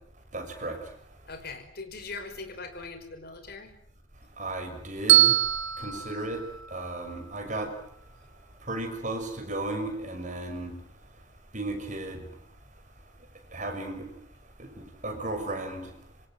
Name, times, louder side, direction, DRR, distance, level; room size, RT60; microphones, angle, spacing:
voice 1, 0.3-0.8 4.4-5.4 5.8-6.4 6.7-7.7 8.6-10.7 11.5-12.3 13.5-14.1 14.6-15.9, right 2 dB, 40° right, 5 dB, 6.4 m, -34 dB
voice 2, 1.3-3.7 5.8-6.0, left 3 dB, 50° left, 8 dB, 5.3 m, -41 dB
Bell, 5.1-7.3, right 12 dB, 70° right, 1.8 m, -24 dB
27.5 x 25.0 x 7.8 m, 0.66 s
head